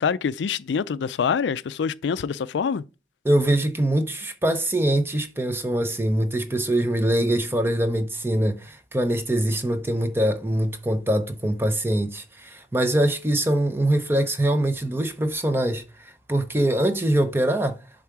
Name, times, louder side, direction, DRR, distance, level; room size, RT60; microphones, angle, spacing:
voice 1, 0.0-2.8, left 6 dB, 80° left, 0.4 m, -25 dB
voice 2, 3.2-17.8, right 1 dB, 15° right, 0.6 m, -23 dB
7.2 x 3.7 x 4.6 m
head